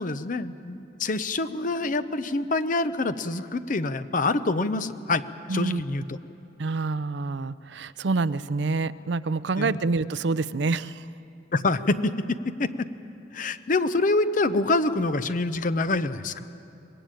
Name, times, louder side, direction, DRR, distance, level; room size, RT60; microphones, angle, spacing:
voice 1, 0.0-5.2 5.5-6.2 9.6-9.8 11.5-12.3 12.6-12.7 13.3-16.5, left 2 dB, 45° left, 12 dB, 0.7 m, -26 dB
voice 2, 5.5-5.8 6.6-11.1, right 3 dB, 70° right, 16 dB, 0.5 m, -27 dB
23.0 x 19.5 x 9.0 m, 2.8 s
head